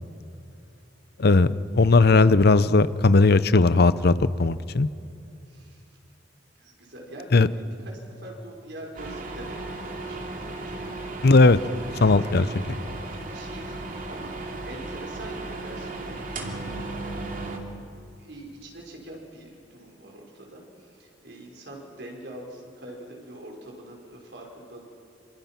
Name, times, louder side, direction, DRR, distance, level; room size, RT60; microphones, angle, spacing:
voice 1, 1.2-4.1 4.4-4.9 7.3-7.5 11.2-11.6 12.0-12.5, left 3 dB, 60° left, 15 dB, 0.7 m, -17 dB
voice 2, 5.5-5.8 6.6-7.3 7.5-11.1 12.8-14.3 14.6-16.7 18.2-24.8, right 1 dB, 65° right, 0 dB, 5.0 m, -44 dB
sound 1, 9.0-17.6, right 2 dB, 50° right, 2.6 m, -35 dB
26.5 x 26.0 x 6.0 m, 2.7 s
head